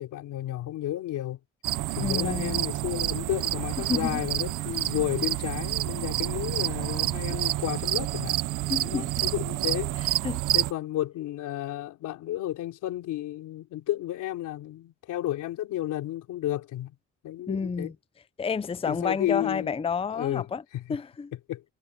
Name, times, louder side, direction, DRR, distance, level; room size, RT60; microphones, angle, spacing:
voice 1, 0.0-1.4 1.9-8.4 8.8-10.0 10.5-17.0 17.2-17.9 18.9-19.8 20.1-20.5 20.7-21.0 21.5-21.7, left 13 dB, 85° left, 3.6 m, -32 dB
sound 1, 1.6-10.7, right 15 dB, 85° right, 0.8 m, -29 dB
voice 2, 2.0-2.6 3.9-4.2 8.7-9.3 10.2-10.4 17.5-17.9 18.4-20.6 20.9-21.3, left 5 dB, 20° left, 0.6 m, -30 dB
cardioid pair, 90°, 30 cm